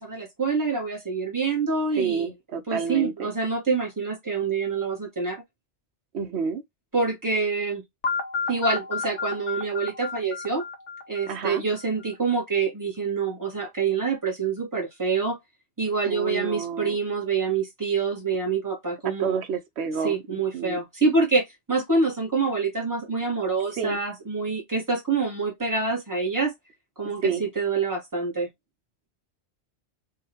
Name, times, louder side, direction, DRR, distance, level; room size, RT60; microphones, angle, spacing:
voice 1, 0.0-2.3 2.7-5.4 6.9-7.8 8.5-10.6 11.1-15.4 15.8-19.4 20.0-26.5 27.0-27.2 27.5-28.5, right 4 dB, 15° right, 1.5 m, -26 dB
voice 2, 1.9-3.3 6.1-6.6 11.3-11.6 16.1-17.0 19.0-20.8 23.8-24.0 27.2-27.4, right 6 dB, 70° right, 1.0 m, -29 dB
sound 1, 8.0-12.0, left 5 dB, 90° left, 1.2 m, -31 dB
3.7 x 2.8 x 2.8 m
omnidirectional pair, 1.2 m